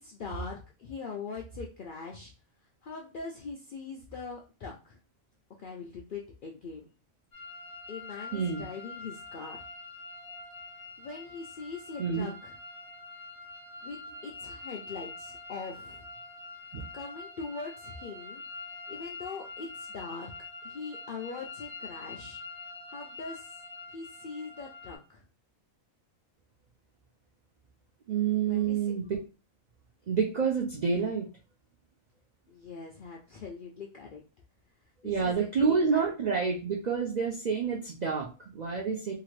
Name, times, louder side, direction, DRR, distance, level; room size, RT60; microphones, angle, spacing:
voice 1, 0.0-2.3 2.8-5.0 5.6-6.9 7.9-9.6 11.0-12.5 13.8-14.0 14.2-16.1 16.9-18.4 18.9-20.3 20.6-22.4 22.9-23.5 23.9-25.2 28.5-28.9 32.5-34.2 35.0-36.1, left 4 dB, 70° left, -1 dB, 0.5 m, -42 dB
sound 1, 7.3-25.0, left 3 dB, 15° left, 1.7 m, -45 dB
voice 2, 8.3-8.6 12.0-12.3 16.7-16.8 28.1-29.2 30.1-31.3 35.0-39.1, right 6 dB, 85° right, -1 dB, 0.3 m, -28 dB
2.8 x 2.4 x 3.1 m, 0.33 s
omnidirectional pair, 1.4 m